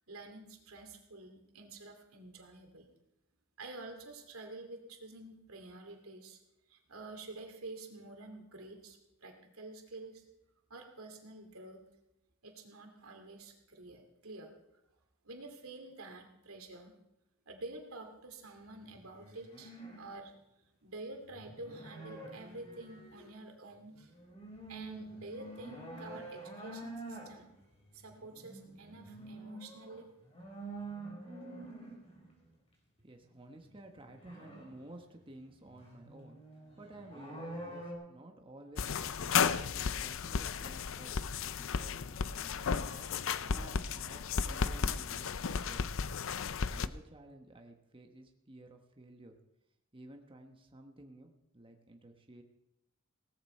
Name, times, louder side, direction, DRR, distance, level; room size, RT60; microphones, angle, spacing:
voice 1, 0.1-2.9 3.6-6.4 6.7-10.2 10.7-11.9 12.4-14.5 15.2-17.0 17.5-20.3 20.8-24.1 24.7-27.5 27.9-30.1, right 2 dB, 90° right, 4 dB, 2.6 m, -49 dB
sound 1, 18.7-20.0 21.1-23.3 23.7-32.5 33.7-37.9, right 2 dB, 30° left, 4.8 m, -48 dB
voice 2, 33.0-39.3 39.7-46.0 46.7-49.3 49.9-52.4, right 1 dB, 25° right, 3 dB, 1.2 m, -54 dB
sound 2, 38.8-46.9, left 6 dB, 65° left, 0.6 m, -34 dB
17.5 x 13.5 x 4.4 m, 0.87 s
head